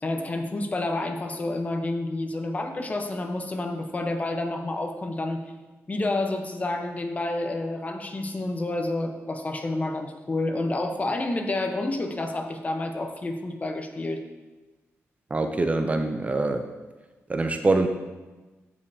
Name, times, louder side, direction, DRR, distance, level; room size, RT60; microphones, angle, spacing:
voice 1, 0.0-5.4 5.9-14.2, left 2 dB, 30° left, 4 dB, 0.9 m, -29 dB
voice 2, 15.3-16.6 17.3-17.9, right 2 dB, 30° right, 6 dB, 0.5 m, -24 dB
15.0 x 5.4 x 2.8 m, 1.2 s
cardioid pair, 105°, 5 cm